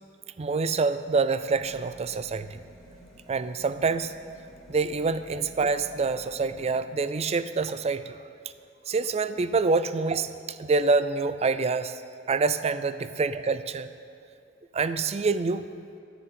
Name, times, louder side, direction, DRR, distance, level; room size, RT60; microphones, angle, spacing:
voice 1, 0.4-2.6 3.3-4.1 4.7-8.2 8.9-12.0 12.3-13.9 14.7-15.7, right 4 dB, 35° right, 13 dB, 0.4 m, -26 dB
sound 1, 1.4-6.7, equal, ahead, 2.3 m, -51 dB
12.5 x 7.1 x 8.4 m, 2.5 s
head